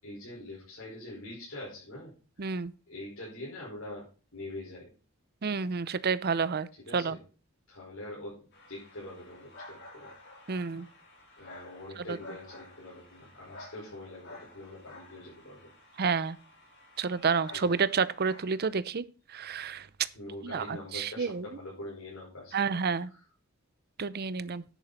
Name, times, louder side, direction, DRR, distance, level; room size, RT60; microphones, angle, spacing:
voice 1, 0.0-2.5 2.9-4.9 6.8-7.2 7.7-8.3 8.7-10.1 11.4-15.7 17.5-17.8 20.1-22.7 23.0-23.2, left 1 dB, 75° left, -7 dB, 5.3 m, -44 dB
voice 2, 2.4-2.7 5.4-6.7 6.9-7.2 10.5-10.8 12.1-12.2 16.0-16.4 17.0-19.0 19.3-19.9 20.4-21.4 22.5-23.1 24.0-24.6, right 5 dB, 50° right, 17 dB, 0.6 m, -29 dB
sound 1, 8.5-18.8, left 2 dB, 55° left, 4.6 m, -52 dB
10.0 x 9.0 x 4.3 m, 0.35 s
head